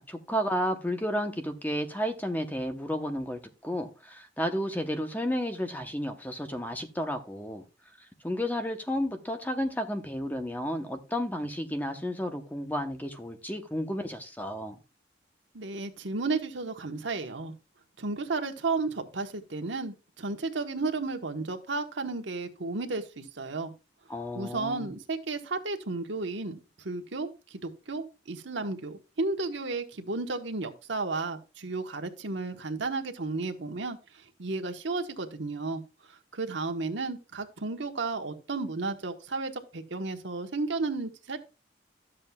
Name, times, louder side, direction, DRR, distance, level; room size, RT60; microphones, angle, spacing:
voice 1, 0.0-7.6 8.2-14.7 24.1-24.9, equal, 10° left, 0.9 m, -32 dB
voice 2, 15.5-17.5 18.0-23.7 24.3-26.6 26.8-35.8 36.1-41.4, right 3 dB, 70° right, 1.2 m, -33 dB
12.5 x 7.5 x 2.3 m
head